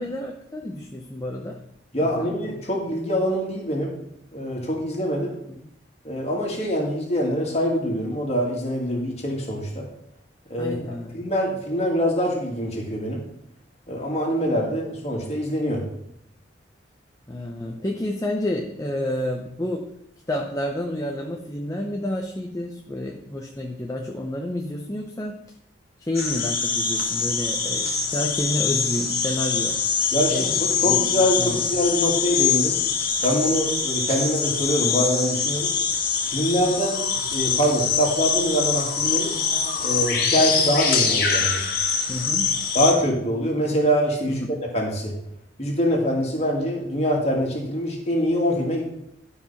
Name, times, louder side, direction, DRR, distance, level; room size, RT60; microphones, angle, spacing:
voice 1, 0.0-1.6 2.0-2.3 5.5-5.7 10.6-11.2 17.3-20.0 20.3-25.4 26.0-29.8 30.3-30.6 30.8-31.1 31.4-31.6 42.1-42.6 44.3-44.6, left 1 dB, 15° left, 2 dB, 0.6 m, -30 dB
voice 2, 1.9-3.9 4.3-5.4 6.0-9.8 10.5-10.7 11.1-13.2 13.9-15.8 30.1-32.8 33.2-35.7 36.3-39.3 39.8-41.6 42.7-45.1 45.6-48.8, equal, 35° left, -1 dB, 2.3 m, -24 dB
sound 1, 26.1-42.9, left 6 dB, 50° left, 1.6 m, -24 dB
12.0 x 4.9 x 5.8 m, 0.78 s
head